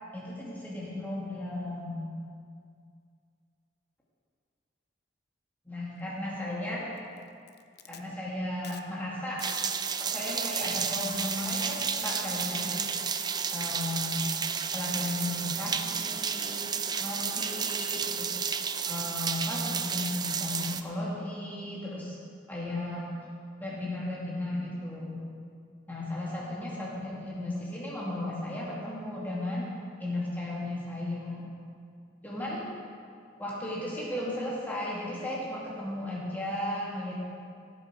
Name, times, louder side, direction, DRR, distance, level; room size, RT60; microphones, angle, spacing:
voice 1, 0.1-2.0 5.7-6.9 7.9-9.4 10.0-12.9 13.5-14.3 14.7-16.7 17.0-18.3 18.9-22.2 22.5-23.0 23.6-25.2 25.9-29.7 30.0-31.5 32.2-32.7 33.4-37.2, left 1 dB, 10° left, -7 dB, 2.3 m, -35 dB
Packing tape duct tape, 7.0-8.0 8.6-8.8 9.4-9.7 10.6-12.7, left 9 dB, 55° left, 0.7 m, -46 dB
sound 1, 9.4-20.8, right 6 dB, 20° right, 0.4 m, -32 dB
15.5 x 8.3 x 6.2 m, 2.3 s
head